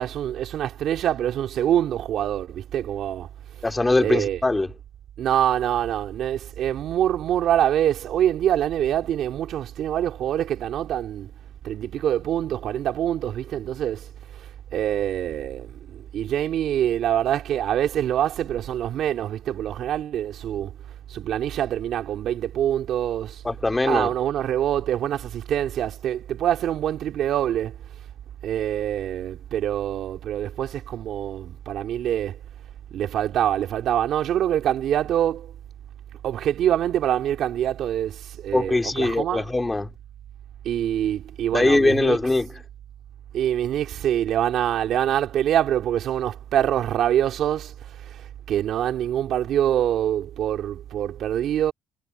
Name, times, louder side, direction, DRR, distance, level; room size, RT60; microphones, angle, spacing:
voice 1, 0.0-3.3 4.0-4.4 5.2-11.3 11.6-14.1 14.7-20.7 21.1-23.4 23.8-27.7 28.4-32.4 32.9-35.5 36.2-39.4 40.6-42.2 43.3-47.7 48.5-51.7, right 11 dB, 65° right, 2.5 m, -25 dB
voice 2, 3.6-4.7 23.4-24.1 38.5-39.9 41.5-42.5, left 2 dB, 15° left, 3.9 m, -21 dB
supercardioid pair, 85°, 0 cm